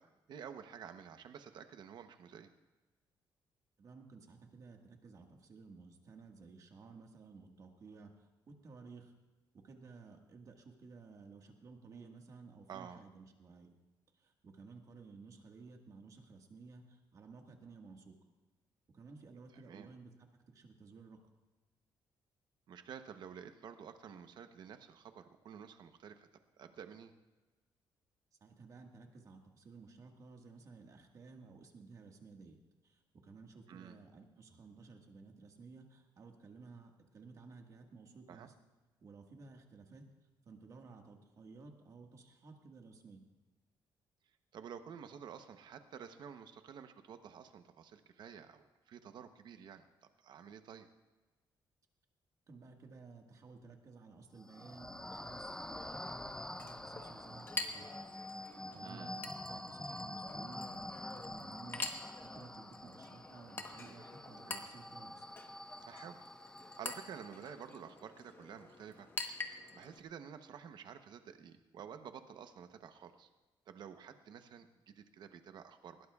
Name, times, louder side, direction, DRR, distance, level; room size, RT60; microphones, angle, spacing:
voice 1, 0.0-2.5 12.7-13.0 19.7-19.9 22.7-26.3 26.6-27.1 33.7-33.9 38.3-38.5 44.5-49.8 50.2-50.9 58.8-59.1 64.4-64.6 65.8-69.1 69.4-73.3 73.7-76.1, right 7 dB, 60° right, 8 dB, 0.9 m, -51 dB
voice 2, 3.8-9.1 9.6-13.8 14.1-18.2 18.9-21.2 28.4-38.5 39.0-40.0 40.4-43.2 52.5-57.9 58.7-65.3, right 4 dB, 40° right, 3 dB, 1.7 m, -55 dB
sound 1, 54.4-67.8, left 1 dB, 5° left, 0.4 m, -47 dB
Chink clink, 55.0-70.0, left 3 dB, 25° left, 1.1 m, -47 dB
20.0 x 17.5 x 2.4 m, 1.2 s
cardioid pair, 160°, 9 cm